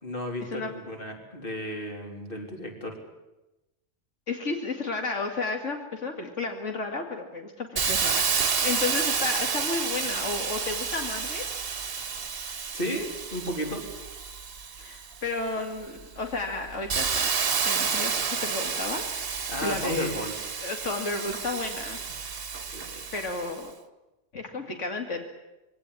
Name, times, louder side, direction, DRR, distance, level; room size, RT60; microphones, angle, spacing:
voice 1, 0.0-2.9 12.7-13.8 19.5-20.3 22.7-23.1, equal, 45° left, 2 dB, 3.9 m, -33 dB
voice 2, 4.3-8.3 8.6-11.7 14.8-17.3 17.6-19.0 19.6-20.2 20.6-22.0 23.1-23.7 24.3-25.2, left 3 dB, 90° left, 3 dB, 2.6 m, -32 dB
Hiss, 7.8-15.3 15.8-23.6, right 6 dB, 55° right, 1.3 m, -30 dB
23.0 x 17.0 x 10.0 m, 0.99 s
omnidirectional pair, 1.2 m